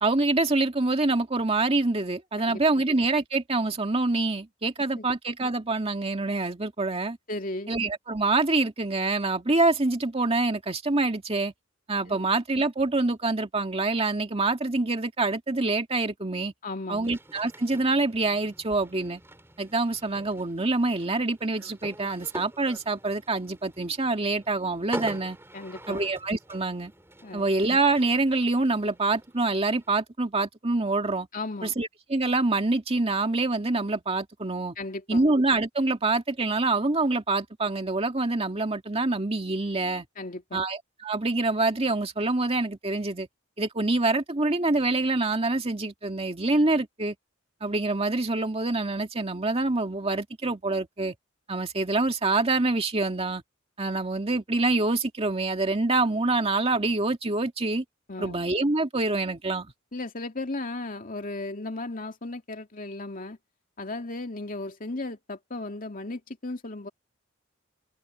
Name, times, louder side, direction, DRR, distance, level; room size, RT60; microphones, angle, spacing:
voice 1, 0.0-7.2 7.7-11.5 11.9-16.5 16.9-19.2 19.6-25.4 25.9-26.9 27.3-31.3 31.6-34.7 35.1-40.1 40.5-43.3 43.6-47.2 47.6-51.1 51.5-53.4 53.8-57.8 58.2-59.7, right 2 dB, 30° right, 2.0 m, -26 dB
voice 2, 2.4-2.8 5.0-5.1 7.3-7.7 12.1-12.2 16.6-17.1 25.5-26.0 27.2-27.5 31.3-31.7 34.8-35.2 40.2-40.6 58.1-58.4 59.9-63.4 63.8-66.9, left 2 dB, 45° left, 2.4 m, -35 dB
sound 1, 17.0-29.9, right 1 dB, 15° right, 4.2 m, -44 dB
open air
head